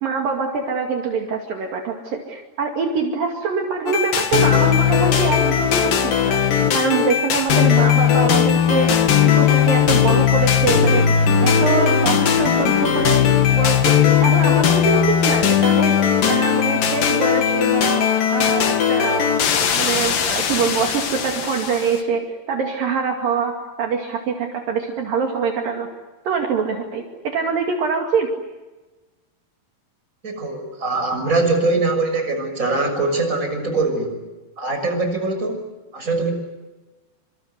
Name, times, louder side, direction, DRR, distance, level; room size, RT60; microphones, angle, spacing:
voice 1, 0.0-6.4 6.7-11.1 11.4-16.0 16.3-18.0 18.3-25.9 26.3-28.3, right 5 dB, 60° right, 2 dB, 3.9 m, -24 dB
sound 1, 3.9-22.0, left 8 dB, 60° left, 3.7 m, -18 dB
voice 2, 30.2-34.2 34.6-35.6 35.9-36.3, right 3 dB, 20° right, 5 dB, 6.7 m, -22 dB
27.5 x 26.5 x 8.1 m, 1.2 s
omnidirectional pair, 4.6 m